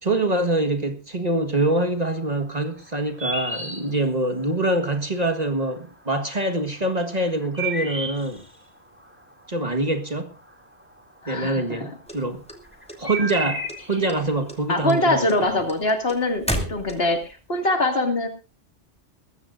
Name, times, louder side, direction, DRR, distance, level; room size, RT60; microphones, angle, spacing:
voice 1, 0.0-8.4 9.5-10.3 11.3-12.4 13.0-15.6, right 2 dB, 35° right, 1.7 m, -25 dB
sound 1, 2.1-4.7 5.1-5.8 6.2-11.3 11.6-15.9, right 2 dB, 10° right, 2.6 m, -33 dB
voice 2, 11.2-11.9 14.7-16.4 16.7-18.3, left 2 dB, 55° left, 2.7 m, -23 dB
sound 2, 12.1-13.3 13.7-14.2 14.5-17.3, equal, 5° left, 2.7 m, -31 dB
21.0 x 15.0 x 2.6 m
omnidirectional pair, 1.2 m